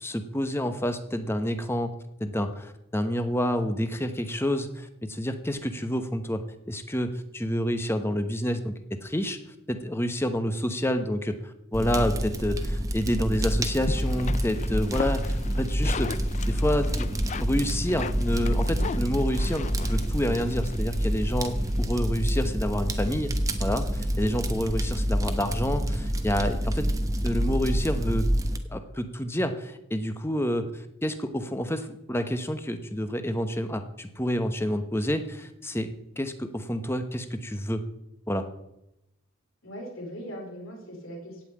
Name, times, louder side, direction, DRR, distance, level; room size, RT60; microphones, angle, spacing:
voice 1, 0.0-1.9 2.2-6.4 6.7-8.7 9.0-9.4 9.7-17.1 17.4-23.3 23.6-26.9 27.2-28.3 28.7-30.7 31.0-37.8 38.3-38.5, equal, 10° left, 8 dB, 1.0 m, -28 dB
Fire, 11.7-28.6, equal, 15° right, 0.9 m, -27 dB
sound 1, 13.8-21.8, left 5 dB, 35° left, 0.4 m, -39 dB
voice 2, 39.6-41.4, equal, 70° left, -1 dB, 4.8 m, -39 dB
16.5 x 5.7 x 8.4 m, 0.87 s
head